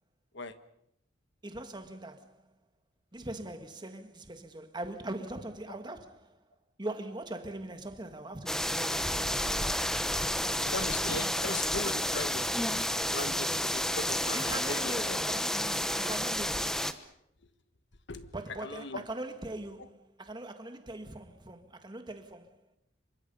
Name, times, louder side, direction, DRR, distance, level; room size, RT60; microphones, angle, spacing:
voice 1, 1.4-2.5 3.1-6.5 6.8-10.8 11.1-11.6 12.4-12.8 14.3-16.9 18.3-22.8, right 2 dB, 25° right, 1.8 m, -42 dB
sound 1, 8.5-16.9, left 1 dB, 5° left, 1.0 m, -31 dB
voice 2, 10.6-12.4 13.1-15.2 18.1-18.3 18.6-19.0, left 3 dB, 60° left, 1.5 m, -38 dB
27.0 x 24.0 x 5.5 m
head